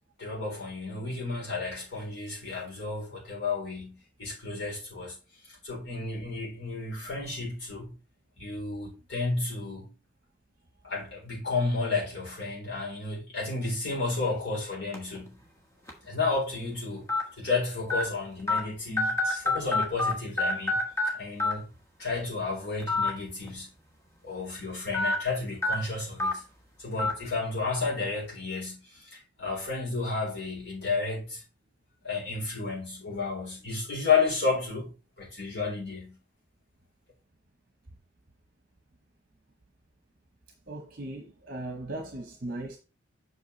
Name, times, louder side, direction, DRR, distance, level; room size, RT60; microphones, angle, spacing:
voice 1, 0.2-5.2 5.4-7.9 8.4-9.9 10.8-15.4 16.0-20.8 21.1-21.7 22.0-23.7 24.2-26.4 26.8-31.4 32.0-36.2, left 4 dB, 65° left, 3.9 m, -32 dB
sound 1, 14.9-15.2 15.9-16.0 17.1-17.2 17.9-18.0 18.5-18.6 19.0-20.1 20.4-21.1 21.4-21.5 22.8-23.1 23.5-23.6 24.9-25.1 25.6-25.7 26.2-26.3 27.0-27.1, left 2 dB, 15° left, 1.3 m, -26 dB
voice 2, 40.7-42.8, right 2 dB, 45° right, 1.0 m, -38 dB
8.0 x 5.5 x 3.2 m
head